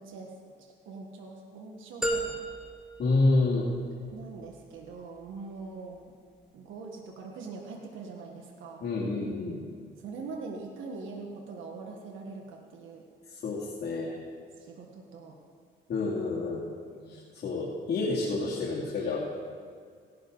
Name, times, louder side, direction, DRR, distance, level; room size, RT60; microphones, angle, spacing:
voice 1, 0.0-2.4 4.1-6.1 6.5-8.9 10.0-13.0 14.6-15.4 17.0-17.2, right 4 dB, 80° right, 1 dB, 1.5 m, -43 dB
sound 1, 2.0-4.1, right 1 dB, 5° right, 2.0 m, -34 dB
voice 2, 3.0-3.7 8.8-9.6 13.3-14.2 15.9-16.6 17.0-19.2, left 3 dB, 55° left, -7 dB, 2.5 m, -28 dB
17.0 x 12.0 x 3.9 m, 2.1 s
cardioid pair, 90°, 20 cm